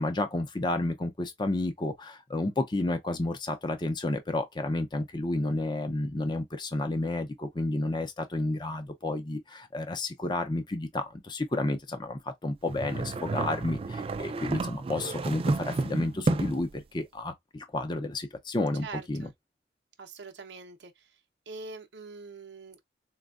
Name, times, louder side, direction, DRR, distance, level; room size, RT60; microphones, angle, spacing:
voice 1, 0.0-19.3, left 2 dB, 25° left, 0.6 m, -31 dB
sound 1, 12.7-16.7, right 3 dB, 30° right, 0.3 m, -31 dB
voice 2, 18.8-19.3 20.0-21.1 21.5-22.8, right 4 dB, 85° right, 0.6 m, -43 dB
4.2 x 2.2 x 2.3 m
head